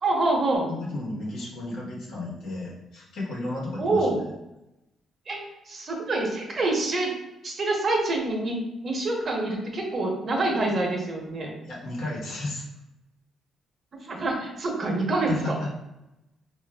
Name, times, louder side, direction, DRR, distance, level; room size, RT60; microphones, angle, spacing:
voice 1, 0.0-0.7 3.8-4.2 5.3-5.4 5.7-7.1 7.4-8.6 8.8-11.5 13.9-15.7, right 2 dB, 45° right, 0 dB, 0.8 m, -26 dB
voice 2, 0.7-4.3 11.6-12.6 15.3-15.7, left 2 dB, 80° left, -4 dB, 1.1 m, -33 dB
4.7 x 2.5 x 2.3 m, 0.93 s
cardioid pair, 90°, 0 cm